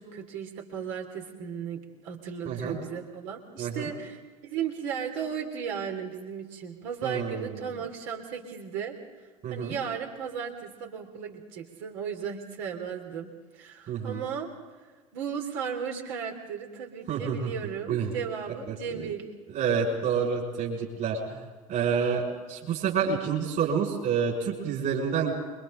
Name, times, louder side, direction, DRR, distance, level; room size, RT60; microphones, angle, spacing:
voice 1, 0.0-9.0 9.5-13.3 13.5-14.5 15.1-19.3, right 7 dB, 60° right, 2 dB, 3.3 m, -35 dB
voice 2, 2.4-2.8 3.6-3.9 7.0-7.5 9.4-9.8 13.9-14.2 17.1-17.5 17.9-18.2 18.7-19.1 19.5-21.4 21.7-25.3, right 6 dB, 45° right, -4 dB, 5.9 m, -28 dB
29.0 x 23.5 x 3.9 m, 1.3 s
figure-of-eight pair, 65°, 19 cm